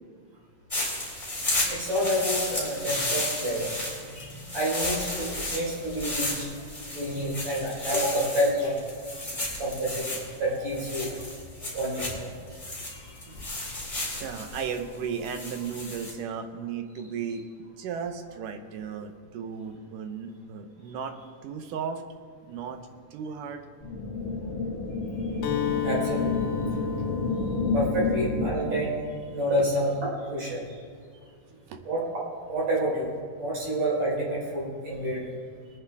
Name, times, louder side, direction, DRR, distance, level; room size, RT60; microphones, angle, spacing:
sound 1, 0.7-16.1, left 1 dB, 10° left, 3.5 m, -33 dB
voice 1, 1.7-6.5 6.9-8.8 9.6-11.1 11.7-12.3 12.8-13.5 25.8-26.5 27.7-28.9 29.3-30.6 31.9-32.0 32.5-33.1 33.4-35.2, right 1 dB, 55° right, -5 dB, 5.5 m, -29 dB
voice 2, 14.2-21.2 21.4-22.0 22.4-22.8 23.1-23.6 31.7-31.8, right 6 dB, 80° right, 6 dB, 2.5 m, -35 dB
sound 2, 23.8-28.8, left 3 dB, 40° left, 2.9 m, -29 dB
Acoustic guitar, 25.4-29.3, left 11 dB, 85° left, 2.4 m, -34 dB
23.0 x 9.9 x 3.5 m, 2.1 s
omnidirectional pair, 3.8 m